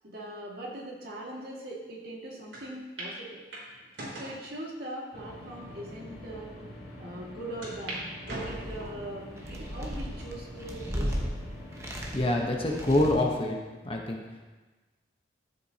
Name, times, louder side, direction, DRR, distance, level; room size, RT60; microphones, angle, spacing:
voice 1, 0.0-3.4 4.1-6.5 7.0-11.3, right 1 dB, 55° right, -3 dB, 2.0 m, -41 dB
sound 1, 2.5-2.6 3.0-3.1 3.5-4.4 5.1-5.2 5.9-6.0 6.3-6.4 7.6-8.0 8.3-9.0 9.6-10.0 10.6-10.7 11.8-12.2, right 1 dB, 80° right, 3.2 m, -40 dB
sound 2, 5.1-13.1, left 1 dB, 55° left, 2.7 m, -45 dB
sound 3, 8.3-9.0 9.4-11.3 11.7-12.4 12.7-13.4, equal, 15° right, 1.0 m, -35 dB
voice 2, 12.1-13.6 13.8-14.2, left 1 dB, 30° left, 0 dB, 1.0 m, -26 dB
13.0 x 7.7 x 2.9 m, 1.2 s
head